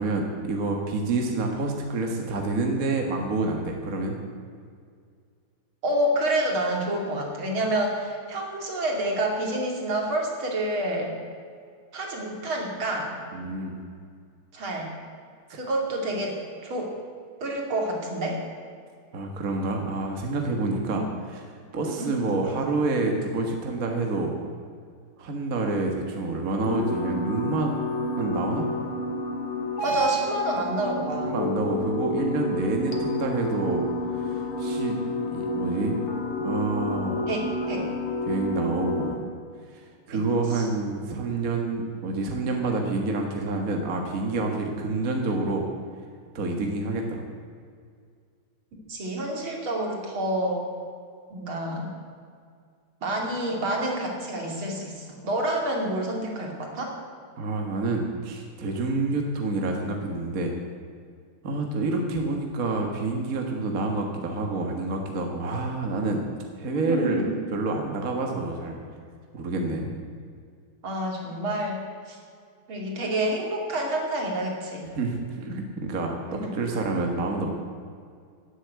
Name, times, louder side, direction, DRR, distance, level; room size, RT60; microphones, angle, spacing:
voice 1, 0.0-4.2 13.3-13.8 19.1-21.5 21.7-24.4 25.2-27.7 28.2-28.7 31.2-35.0 35.3-36.0 36.4-37.3 38.2-39.2 39.7-45.6 46.3-47.2 57.4-60.5 61.4-66.2 66.6-67.3 67.5-68.8 69.3-69.9 74.9-77.5, right 3 dB, 45° right, 2 dB, 1.8 m, -28 dB
voice 2, 5.8-11.1 11.9-13.1 14.5-14.9 15.5-16.3 16.6-16.9 17.4-18.4 20.9-21.1 21.9-22.1 22.4-22.6 29.8-31.4 37.3-37.9 40.1-40.2 40.5-40.7 48.9-50.6 51.3-51.9 53.0-56.9 66.7-67.4 70.8-71.8 72.1-72.2 72.7-74.9 76.3-76.5, right 1 dB, 70° right, 0 dB, 3.4 m, -28 dB
sound 1, 26.6-39.2, left 1 dB, 80° left, 2.5 m, -29 dB
17.0 x 8.4 x 8.2 m, 2.1 s
omnidirectional pair, 2.4 m